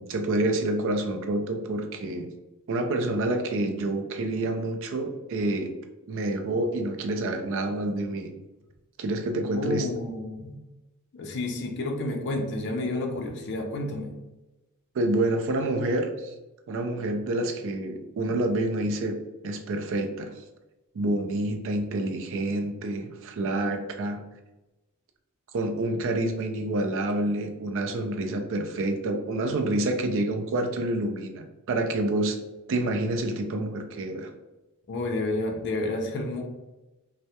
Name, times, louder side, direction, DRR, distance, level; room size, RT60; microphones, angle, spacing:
voice 1, 0.0-2.3 2.7-5.7 6.1-8.3 9.0-9.9 14.9-16.3 16.7-19.2 19.4-20.3 20.9-24.2 25.5-32.4 32.7-34.3, right 2 dB, 60° right, 5 dB, 0.4 m, -28 dB
voice 2, 9.5-10.6 11.1-14.1 34.9-36.4, left 2 dB, 55° left, 2 dB, 0.4 m, -30 dB
2.2 x 2.0 x 2.8 m, 1.0 s
head